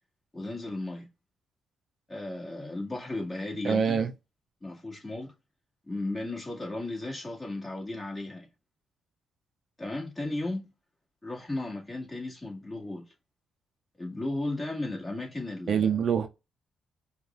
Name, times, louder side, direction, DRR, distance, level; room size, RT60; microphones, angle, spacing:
voice 1, 0.3-1.1 2.1-4.0 4.6-5.3 5.9-8.5 9.8-10.7 11.2-13.1 14.0-15.9, left 2 dB, 20° left, 2.0 m, -35 dB
voice 2, 3.6-4.1 15.7-16.3, right 7 dB, 50° right, 0.5 m, -25 dB
5.1 x 2.4 x 2.5 m
cardioid pair, 90°, 0 cm